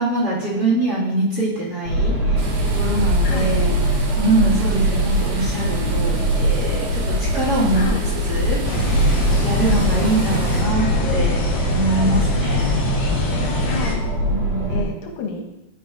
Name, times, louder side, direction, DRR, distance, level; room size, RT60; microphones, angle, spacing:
voice 1, 0.0-3.7 4.2-7.8 8.3-11.4 11.7-12.8 14.2-15.0, right 2 dB, 35° right, -7 dB, 2.2 m, -24 dB
sound 1, 1.8-14.8, equal, 55° right, 3.0 m, -21 dB
sound 2, 2.4-10.6, right 3 dB, 75° right, 2.5 m, -37 dB
sound 3, 8.6-13.9, left 1 dB, 60° left, 1.3 m, -25 dB
voice 2, 13.7-14.1 14.7-15.4, left 4 dB, 85° left, 2 dB, 2.6 m, -29 dB
12.0 x 5.2 x 2.5 m, 0.94 s
omnidirectional pair, 3.6 m